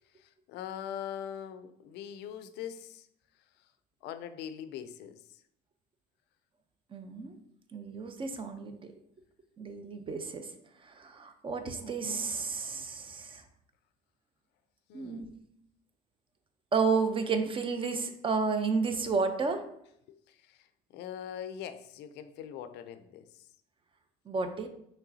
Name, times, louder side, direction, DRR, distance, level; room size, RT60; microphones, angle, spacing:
voice 1, 0.2-3.1 4.0-5.2 14.9-15.3 20.3-20.6 20.9-23.4, left 9 dB, 80° left, 11 dB, 0.4 m, -42 dB
voice 2, 6.9-7.4 7.7-8.9 9.6-10.5 10.8-13.4 14.9-15.3 16.7-19.6 24.3-24.7, right 4 dB, 30° right, 8 dB, 0.6 m, -31 dB
5.5 x 3.2 x 2.7 m, 0.73 s
cardioid pair, 110°, 17 cm